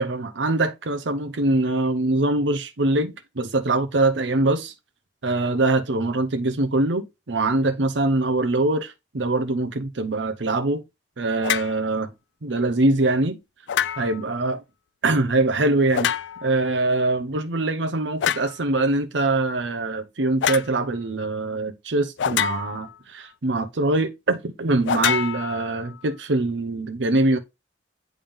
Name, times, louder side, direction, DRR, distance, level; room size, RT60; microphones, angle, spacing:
voice 1, 0.0-4.7 5.2-10.8 11.2-12.1 12.4-13.4 14.0-14.6 15.0-16.1 16.4-27.4, right 2 dB, 80° right, 0.8 m, -23 dB
sound 1, 11.4-11.8 13.7-14.3 15.9-16.6 18.2-18.6 20.4-20.7 22.2-22.9 24.9-26.0, left 9 dB, 80° left, 0.4 m, -26 dB
8.8 x 3.5 x 3.6 m
head